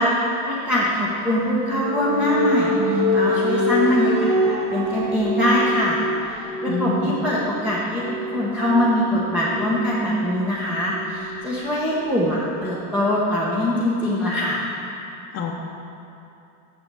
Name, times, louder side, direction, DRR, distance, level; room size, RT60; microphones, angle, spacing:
voice 1, 0.0-14.7, left 1 dB, 5° right, -7 dB, 0.9 m, -23 dB
sound 1, 0.8-12.4, equal, 70° right, 2.5 m, -26 dB
voice 2, 6.7-7.2 15.3-15.5, left 5 dB, 35° left, -3 dB, 0.8 m, -26 dB
7.6 x 7.4 x 6.8 m, 2.7 s
cardioid pair, 165°, 45 cm